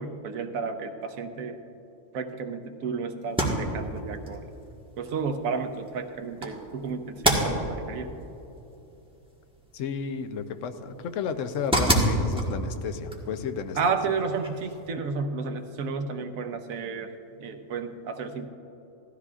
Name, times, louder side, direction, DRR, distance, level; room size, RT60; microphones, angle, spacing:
voice 1, 0.0-1.6 2.1-4.5 5.0-8.1 13.8-17.1 17.4-18.5, right 5 dB, 85° right, 7 dB, 1.2 m, -32 dB
sound 1, 3.2-14.9, right 1 dB, 5° right, 1.3 m, -31 dB
voice 2, 9.7-13.8, left 6 dB, 70° left, 8 dB, 1.0 m, -32 dB
17.0 x 13.5 x 2.4 m, 2.9 s
omnidirectional pair, 1.4 m